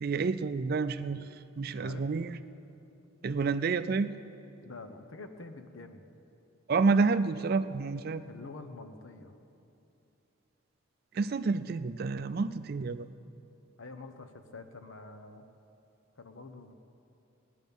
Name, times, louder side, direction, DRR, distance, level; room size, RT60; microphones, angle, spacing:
voice 1, 0.0-2.4 3.2-4.1 6.7-8.2 11.1-13.1, right 4 dB, 50° right, 12 dB, 0.4 m, -29 dB
voice 2, 1.7-2.1 4.6-6.1 8.3-9.3 13.8-15.4 16.2-16.7, left 3 dB, 80° left, 8 dB, 0.9 m, -46 dB
18.0 x 10.5 x 5.4 m, 2.8 s
head